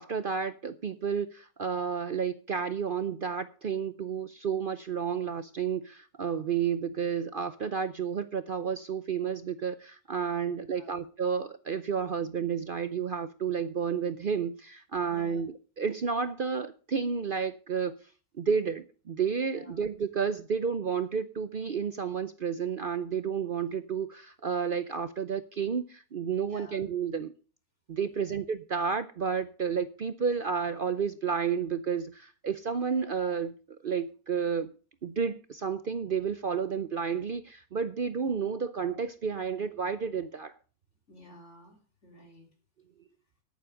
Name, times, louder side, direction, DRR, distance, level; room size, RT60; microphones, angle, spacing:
voice 1, 0.0-18.0 18.4-27.3 27.9-33.5 33.8-34.7 35.0-40.5, right 6 dB, 55° right, 12 dB, 0.6 m, -31 dB
voice 2, 10.5-11.0 15.1-15.4 19.5-19.8 26.5-26.8 28.1-28.4 41.1-42.5, left 1 dB, 45° left, 2 dB, 3.8 m, -53 dB
10.5 x 9.4 x 6.3 m, 0.38 s
omnidirectional pair, 1.6 m